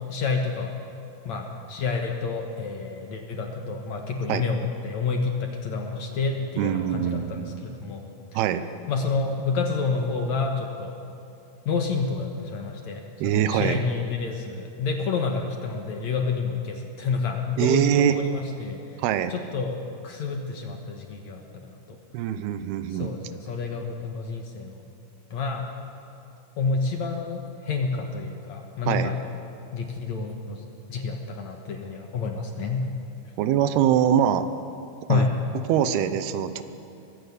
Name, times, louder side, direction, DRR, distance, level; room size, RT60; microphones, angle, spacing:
voice 1, 0.1-0.7 1.3-8.1 8.9-10.9 11.7-18.8 19.3-19.8 20.0-22.0 22.9-24.8 25.3-25.7 26.6-29.1 29.7-30.6 30.9-32.9 35.1-35.3, left 4 dB, 60° left, 3 dB, 2.2 m, -29 dB
voice 2, 6.6-7.6 8.3-8.7 13.2-13.8 17.6-18.2 19.0-19.3 22.1-23.1 28.9-29.1 33.4-34.5 35.1-35.3 35.7-36.6, right 10 dB, 85° right, 11 dB, 2.9 m, -23 dB
22.0 x 15.5 x 8.3 m, 2.7 s
omnidirectional pair, 4.4 m